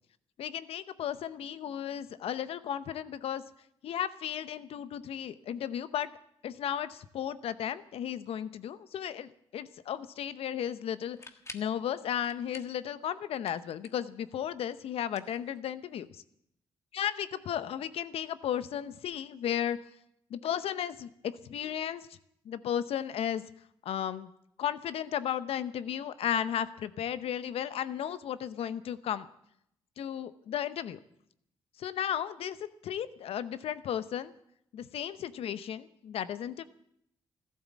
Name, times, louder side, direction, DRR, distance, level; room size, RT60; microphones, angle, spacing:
voice 1, 0.4-3.4 3.8-6.1 6.4-11.2 11.5-16.2 16.9-19.8 20.3-22.1 22.4-23.4 23.8-24.3 24.6-29.3 30.0-31.0 31.8-32.6 32.8-34.3 34.7-36.6, left 9 dB, 70° left, 14 dB, 0.8 m, -34 dB
sound 1, 11.0-11.8 12.2-12.8 13.1-14.1 15.0-16.0, left 2 dB, 25° left, 1.5 m, -49 dB
14.5 x 12.5 x 7.3 m, 0.73 s
supercardioid pair, 55°, 10 cm